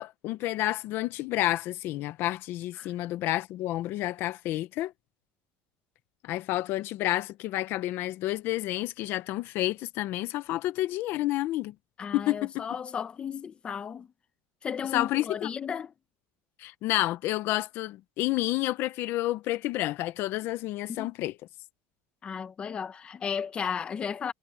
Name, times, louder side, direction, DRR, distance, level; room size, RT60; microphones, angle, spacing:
voice 1, 0.0-4.9 6.2-11.7 12.1-12.6 14.9-15.5 16.6-21.3, left 16 dB, 50° left, 0.8 m, -30 dB
voice 2, 12.0-14.1 14.6-15.9 20.9-21.1 22.2-24.3, left 7 dB, 20° left, 0.8 m, -34 dB
cardioid pair, 175°, 5 cm